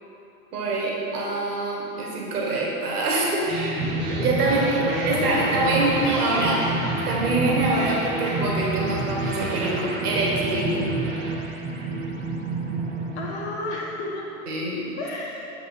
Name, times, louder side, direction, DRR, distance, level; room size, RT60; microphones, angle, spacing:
voice 1, 0.5-3.6 4.1-6.6 7.0-10.9 14.5-14.9, right 2 dB, 85° right, -3 dB, 1.5 m, -25 dB
sound 1, 3.4-14.0, right 3 dB, 60° right, 1.3 m, -29 dB
sound 2, 3.8-12.1, left 5 dB, 85° left, 0.7 m, -38 dB
voice 2, 4.4-6.3 13.1-14.3 15.0-15.5, left 2 dB, 45° left, -2 dB, 1.1 m, -32 dB
6.7 x 3.7 x 4.1 m, 2.9 s
hypercardioid pair, 140°, 44 cm